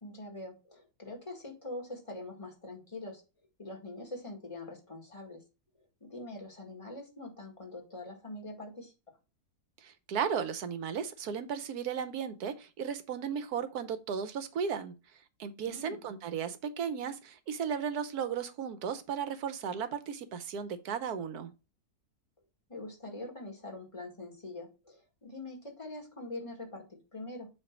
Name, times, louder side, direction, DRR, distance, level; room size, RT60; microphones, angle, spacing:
voice 1, 0.0-3.2 3.6-5.4 6.0-8.9 15.6-16.0 22.7-27.5, left 2 dB, 20° left, 1.9 m, -44 dB
voice 2, 9.8-14.9 15.4-21.5, right 7 dB, 70° right, 1.3 m, -35 dB
7.8 x 2.9 x 6.0 m
omnidirectional pair, 1.8 m